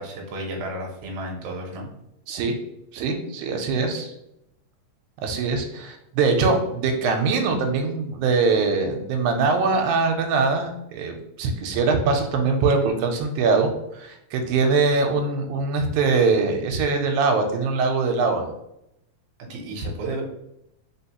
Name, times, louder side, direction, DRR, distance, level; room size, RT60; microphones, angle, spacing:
voice 1, 0.0-1.9 19.5-20.2, right 1 dB, 65° right, 0 dB, 1.6 m, -32 dB
voice 2, 2.9-4.1 5.2-18.4, right 4 dB, 90° right, 4 dB, 2.0 m, -22 dB
3.8 x 3.8 x 2.9 m, 0.81 s
omnidirectional pair, 3.3 m